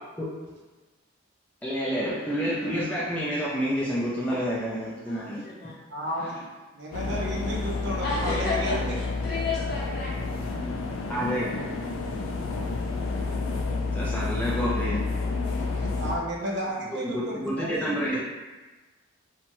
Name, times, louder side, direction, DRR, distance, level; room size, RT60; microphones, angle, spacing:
voice 1, 1.6-5.4 11.1-11.5 13.0-13.2 13.9-15.0 17.1-18.2, equal, 5° left, -7 dB, 0.3 m, -29 dB
voice 2, 5.0-5.8 8.0-10.5, left 3 dB, 50° left, -5 dB, 0.6 m, -32 dB
voice 3, 5.9-6.4 6.7-9.0 15.5-18.2, right 1 dB, 55° right, -2 dB, 0.5 m, -33 dB
sound 1, 6.9-16.2, left 3 dB, 85° left, 0.3 m, -30 dB
2.7 x 2.1 x 2.9 m, 1.2 s
head